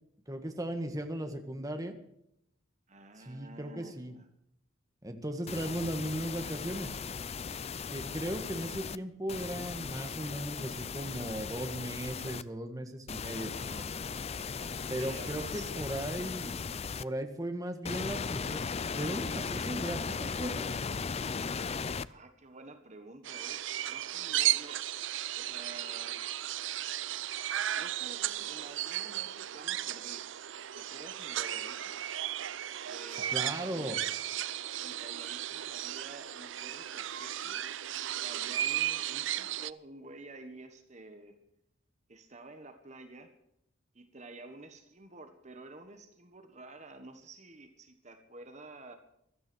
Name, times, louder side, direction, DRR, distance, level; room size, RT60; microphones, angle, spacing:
voice 1, 0.3-1.9 3.2-4.1 5.0-6.9 7.9-13.5 14.9-16.5 17.0-18.6 19.0-20.7 33.3-34.0, right 1 dB, 15° right, 6 dB, 1.6 m, -37 dB
voice 2, 2.9-4.3 6.4-7.0 13.3-13.9 14.9-15.8 22.1-23.6 23.9-24.8 25.3-26.2 27.7-30.2 30.7-32.0 32.9-34.1 34.8-37.6 38.2-41.3 42.1-43.3 43.9-49.0, right 2 dB, 35° right, 7 dB, 1.4 m, -50 dB
sound 1, 5.5-9.0 9.3-12.4 13.1-17.0 17.8-22.1, left 5 dB, 30° left, 0.5 m, -37 dB
sound 2, 23.2-39.7, right 12 dB, 65° right, 0.5 m, -35 dB
15.5 x 13.0 x 6.3 m, 0.78 s
head